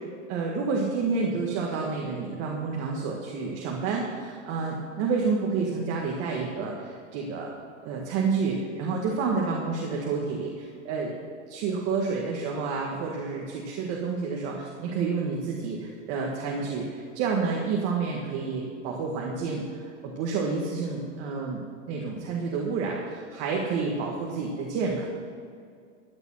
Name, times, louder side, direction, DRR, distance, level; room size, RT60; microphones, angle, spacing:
voice 1, 0.3-7.6 7.8-11.1 11.5-21.6 21.9-25.1, right 4 dB, 40° right, -1 dB, 1.7 m, -29 dB
13.5 x 8.9 x 5.7 m, 2.3 s
supercardioid pair, 150°, 36 cm